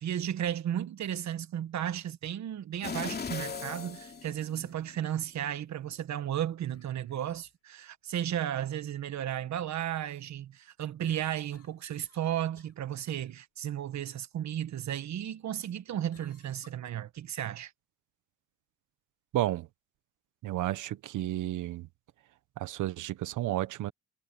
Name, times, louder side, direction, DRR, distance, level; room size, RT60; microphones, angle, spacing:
voice 1, 0.0-17.7, right 10 dB, 65° right, 1.5 m, -34 dB
sound 1, 1.9-2.4 2.7-2.8 4.6-4.9 6.7-7.5 11.0-12.3 12.6-12.8 13.2-13.3 16.1-16.9, left 8 dB, 50° left, 6.5 m, -61 dB
sound 2, 2.8-5.0 5.4-5.5, left 5 dB, 35° left, 2.8 m, -38 dB
voice 2, 19.3-19.7 20.4-21.9 22.6-23.9, right 14 dB, 85° right, 1.3 m, -32 dB
cardioid pair, 90°, 30 cm